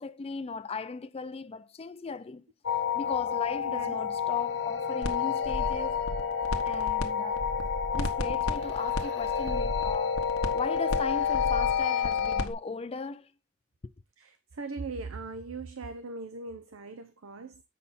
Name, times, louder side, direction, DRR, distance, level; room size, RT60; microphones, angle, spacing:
voice 1, 0.0-2.5 2.9-6.0 6.6-7.5 7.9-13.3, left 4 dB, 30° left, 0.4 m, -37 dB
sound 1, 2.7-12.5, left 7 dB, 55° left, 0.9 m, -29 dB
sound 2, 5.0-5.2 5.5-7.1 7.3-12.5, left 1 dB, 85° left, 1.2 m, -34 dB
voice 2, 14.2-17.6, right 3 dB, 70° right, 0.7 m, -40 dB
7.6 x 5.6 x 4.1 m
head